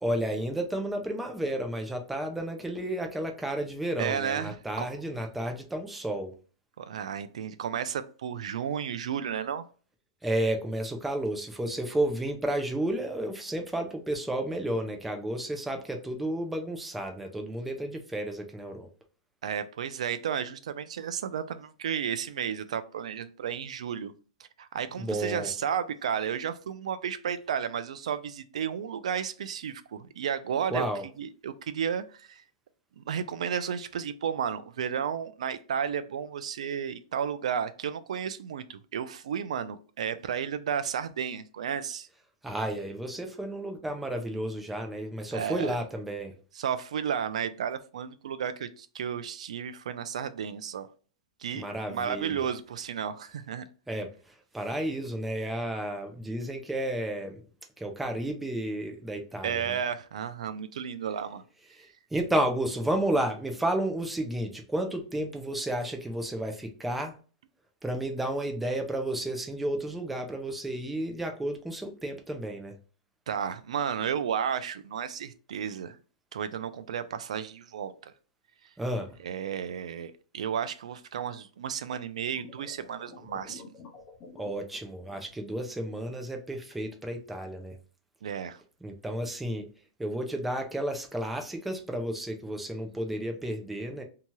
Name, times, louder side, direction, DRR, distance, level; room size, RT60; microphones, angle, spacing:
voice 1, 0.0-6.3 10.2-18.9 25.0-25.6 30.7-31.0 42.4-46.3 51.5-52.5 53.9-57.4 57.8-59.8 61.7-67.2 67.8-72.7 78.8-79.1 84.4-87.8 88.8-89.7 90.0-94.0, right 1 dB, 5° right, 0.4 m, -32 dB
voice 2, 4.0-4.9 6.8-9.6 19.4-24.1 24.6-30.9 31.2-32.4 33.0-42.1 45.3-45.8 46.6-50.9 51.4-53.6 59.4-61.4 73.3-76.0 76.3-78.1 79.2-83.8 88.2-88.6, right 8 dB, 80° right, 0.4 m, -33 dB
sound 1, 82.4-84.6, left 4 dB, 25° left, 0.9 m, -48 dB
2.8 x 2.3 x 2.9 m
supercardioid pair, 165°, 3 cm